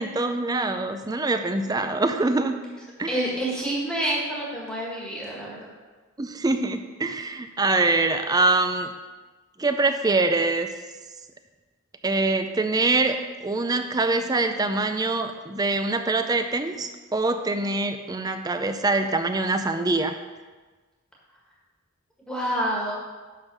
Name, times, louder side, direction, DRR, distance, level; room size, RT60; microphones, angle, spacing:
voice 1, 0.0-2.5 3.0-3.2 6.2-8.9 9.6-10.7 12.0-20.2, right 3 dB, 20° right, 7 dB, 0.4 m, -24 dB
voice 2, 3.1-5.7 22.3-23.0, right 1 dB, 5° left, -5 dB, 1.6 m, -28 dB
10.5 x 3.8 x 6.1 m, 1.3 s
head